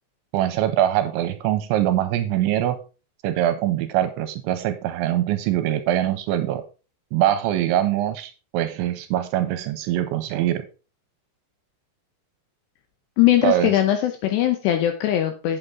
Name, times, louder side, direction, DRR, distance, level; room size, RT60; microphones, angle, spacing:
voice 1, 0.3-2.8 3.2-6.6 7.1-10.6 13.4-13.7, right 12 dB, 85° right, 9 dB, 2.9 m, -23 dB
voice 2, 13.2-15.6, left 12 dB, 80° left, 7 dB, 2.5 m, -20 dB
8.4 x 7.9 x 3.7 m, 0.33 s
omnidirectional pair, 5.7 m